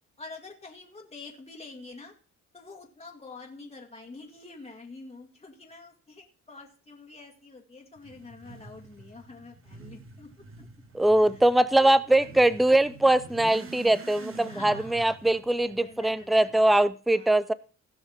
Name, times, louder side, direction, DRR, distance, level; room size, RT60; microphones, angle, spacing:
voice 1, 0.2-2.1 2.5-10.3 11.2-11.4 11.7-12.3 14.5-15.1 15.6-16.5 17.1-17.3, left 3 dB, 20° left, 1 dB, 1.9 m, -46 dB
Motorcycle / Accelerating revving vroom, 8.0-16.8, right 3 dB, 45° right, 2.1 m, -47 dB
voice 2, 10.9-17.5, right 1 dB, ahead, 16 dB, 0.5 m, -22 dB
17.0 x 5.8 x 4.3 m, 0.37 s
cardioid pair, 90°, 30 cm